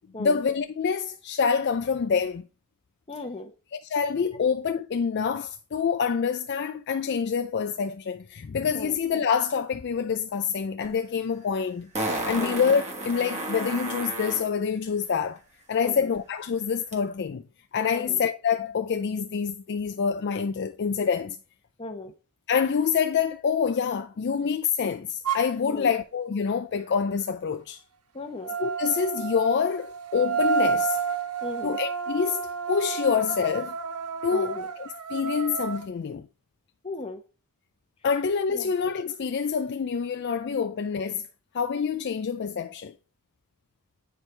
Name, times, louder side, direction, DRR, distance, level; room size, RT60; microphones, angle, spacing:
voice 1, 0.2-2.4 3.7-11.9 12.2-15.4 15.7-17.4 17.7-21.4 22.5-27.8 28.6-31.0 31.6-32.4 32.7-33.8 34.2-36.3 38.0-41.2 41.5-42.9, left 6 dB, 50° left, 0.4 m, -26 dB
voice 2, 3.1-3.5 8.7-9.0 12.3-12.6 15.8-16.1 17.9-18.2 21.8-22.1 25.7-25.9 28.1-28.5 31.4-31.8 34.3-34.7 36.8-37.2 38.5-38.7, left 2 dB, 25° left, 0.9 m, -37 dB
Fart, 10.8-10.9 11.9-14.5 16.9-17.0, right 1 dB, 30° right, 1.4 m, -32 dB
sound 1, 25.3-25.5 28.4-35.9, right 6 dB, 90° right, 0.7 m, -30 dB
9.0 x 4.6 x 3.3 m
head